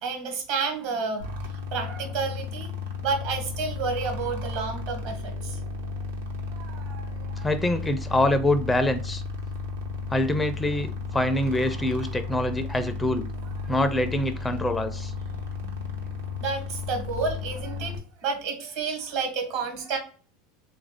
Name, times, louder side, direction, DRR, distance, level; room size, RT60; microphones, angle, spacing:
voice 1, 0.0-2.7 3.0-5.6 6.5-7.5 13.6-13.8 15.3-15.8 16.4-20.0, right 4 dB, 65° right, 4 dB, 1.2 m, -31 dB
sound 1, 1.2-18.0, left 4 dB, 80° right, 0.7 m, -34 dB
voice 2, 7.4-9.2 10.1-13.3 13.7-15.1, left 1 dB, 15° left, 9 dB, 0.4 m, -25 dB
3.2 x 2.5 x 3.5 m, 0.39 s
hypercardioid pair, 85°, 0 cm